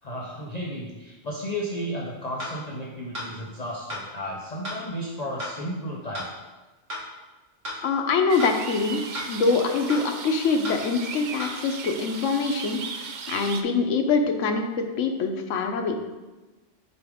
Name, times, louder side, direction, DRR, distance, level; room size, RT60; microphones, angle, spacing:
voice 1, 0.0-6.3, equal, 40° left, -3 dB, 0.7 m, -33 dB
sound 1, 2.4-2.5 3.1-3.3 3.9-4.0 4.6-4.8 5.4-5.5 6.1-6.3 6.9-7.0 7.6-7.8 8.4-8.5 9.1-9.3 9.9-10.0 10.6-10.8 11.4-11.5, left 1 dB, 85° right, 2.1 m, -33 dB
voice 2, 7.8-9.0 9.3-12.8 13.3-15.9, left 4 dB, 85° left, 4 dB, 1.1 m, -24 dB
sound 2, 8.3-13.6, right 5 dB, 60° right, 0.5 m, -37 dB
6.6 x 4.8 x 3.5 m, 1.2 s
omnidirectional pair, 1.2 m